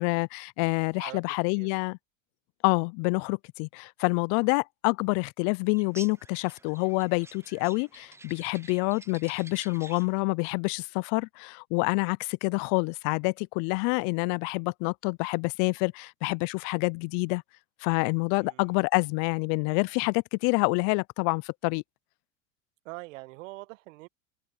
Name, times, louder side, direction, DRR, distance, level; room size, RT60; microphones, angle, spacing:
voice 1, 0.0-2.0 2.6-17.4 17.8-21.8, left 34 dB, 50° left, 0.5 m, -27 dB
sound 1, 5.7-10.2, right 3 dB, 5° right, 0.7 m, -50 dB
voice 2, 18.4-18.8 22.8-24.1, right 21 dB, 65° right, 1.4 m, -43 dB
open air
hypercardioid pair, 95°, 40 cm